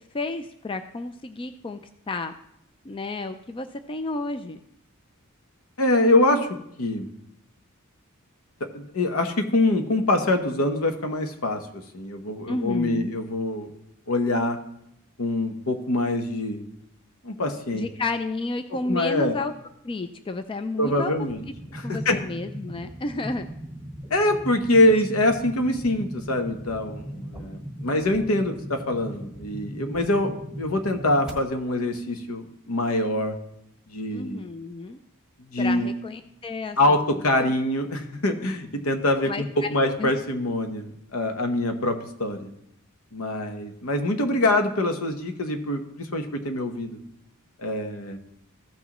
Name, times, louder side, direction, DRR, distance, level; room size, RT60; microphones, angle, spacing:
voice 1, 0.1-2.4 2.8-4.6 12.5-13.1 17.7-19.5 19.8-21.1 21.8-23.5 34.1-35.0 35.6-37.5 39.2-39.7 40.0-40.1, left 3 dB, 25° left, 9 dB, 0.4 m, -31 dB
voice 2, 5.8-6.5 6.8-7.1 8.6-13.7 14.1-14.6 15.2-16.6 17.2-17.8 18.9-19.4 20.8-21.4 21.7-22.2 24.1-33.4 33.9-34.5 35.5-35.9 36.8-42.5 43.1-47.0 47.6-48.2, left 1 dB, 75° left, 6 dB, 1.0 m, -24 dB
sound 1, 21.3-31.3, equal, 5° right, 1.5 m, -38 dB
14.5 x 6.2 x 3.0 m, 0.77 s
head